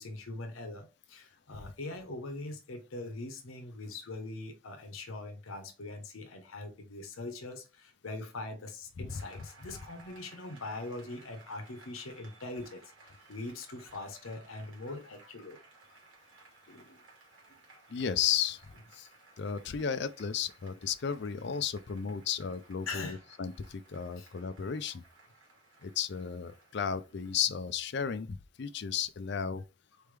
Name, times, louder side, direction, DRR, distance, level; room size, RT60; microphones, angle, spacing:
voice 1, 0.0-12.8 13.3-15.6 16.7-17.0 17.5-17.6 22.9-23.2 24.2-24.3, left 2 dB, 80° left, 0.9 m, -42 dB
Applause, 9.1-27.4, right 3 dB, 75° right, 2.1 m, -59 dB
voice 2, 17.9-18.6 18.9-19.1 19.4-25.0 25.8-29.6, left 7 dB, 55° left, 0.4 m, -34 dB
4.4 x 3.4 x 3.3 m
head